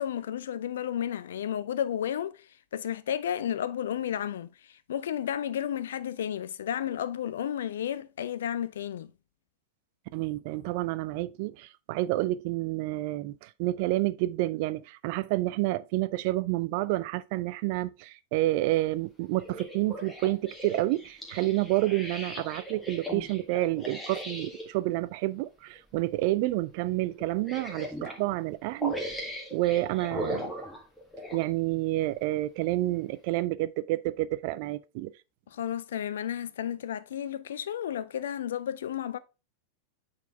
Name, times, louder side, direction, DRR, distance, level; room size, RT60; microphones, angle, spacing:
voice 1, 0.0-2.4 2.7-4.5 4.9-9.1 35.5-39.2, left 10 dB, 60° left, 0.5 m, -32 dB
voice 2, 10.1-29.2 29.5-30.5 31.3-35.1, right 17 dB, 45° right, 0.4 m, -29 dB
sound 1, 19.4-24.7 25.7-25.9 26.3-26.4 27.2-28.2 28.8-31.5 32.1-32.2, equal, 5° left, 1.8 m, -38 dB
8.1 x 4.1 x 3.4 m
figure-of-eight pair, 90°, 0 cm